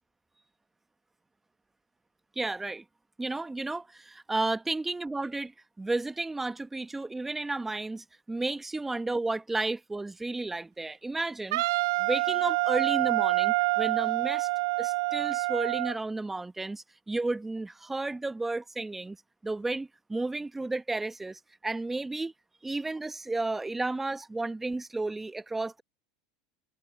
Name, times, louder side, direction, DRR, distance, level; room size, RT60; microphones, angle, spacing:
voice 1, 2.4-2.8 3.2-5.5 5.8-11.6 12.0-14.5 14.8-19.2 19.4-22.3 22.6-25.8, right 2 dB, 10° right, 1.0 m, -32 dB
Wind instrument woodwind instrument, 11.5-16.0, right 24 dB, 75° right, 0.5 m, -27 dB
supercardioid pair, 105°, 2 cm